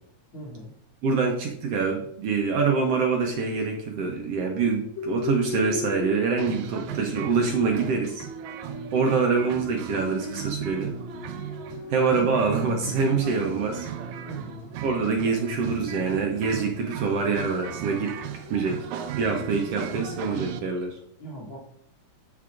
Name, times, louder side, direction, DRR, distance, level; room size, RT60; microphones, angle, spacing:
voice 1, 0.3-0.7 14.3-14.7 21.2-21.6, right 1 dB, 45° left, -6 dB, 3.2 m, -39 dB
voice 2, 1.0-8.3 8.9-10.9 11.9-13.9 14.8-18.2 18.5-18.8 19.1-21.0, right 4 dB, 65° right, 1 dB, 1.7 m, -25 dB
sound 1, 5.0-19.2, left 4 dB, 70° left, 1.1 m, -40 dB
sound 2, 6.4-20.6, right 10 dB, 85° right, 2.0 m, -36 dB
13.0 x 4.8 x 2.5 m, 0.70 s
omnidirectional pair, 3.3 m